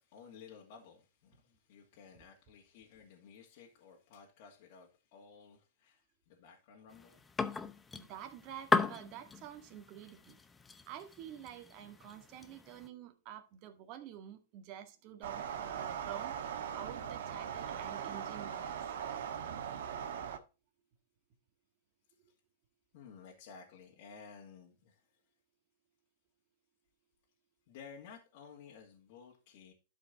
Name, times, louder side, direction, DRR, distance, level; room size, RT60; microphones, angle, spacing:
voice 1, 0.0-7.2 22.9-25.0 27.7-29.7, left 6 dB, 55° left, 2.2 m, -55 dB
sound 1, 6.9-12.9, left 4 dB, 10° left, 0.7 m, -38 dB
voice 2, 8.0-10.4 10.9-18.9, right 10 dB, 40° right, 1.8 m, -49 dB
sound 2, 15.2-20.4, right 8 dB, 70° right, 1.4 m, -40 dB
12.0 x 5.2 x 4.1 m
hypercardioid pair, 140°, 0 cm